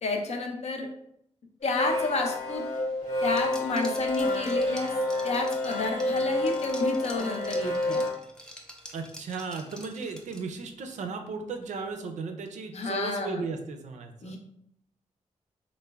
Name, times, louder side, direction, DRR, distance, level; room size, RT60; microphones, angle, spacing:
voice 1, 0.0-0.9 1.6-2.7 3.2-4.9 5.2-8.0 12.7-13.4 14.2-14.4, left 3 dB, 60° left, 3 dB, 0.5 m, -30 dB
sound 1, 1.6-8.1, left 1 dB, 85° left, 1.0 m, -29 dB
Liquid, 3.3-10.7, equal, 5° left, 0.5 m, -47 dB
voice 2, 8.9-14.4, right 4 dB, 80° right, 5 dB, 0.4 m, -36 dB
3.1 x 2.1 x 2.3 m, 0.71 s
cardioid pair, 80°, 12 cm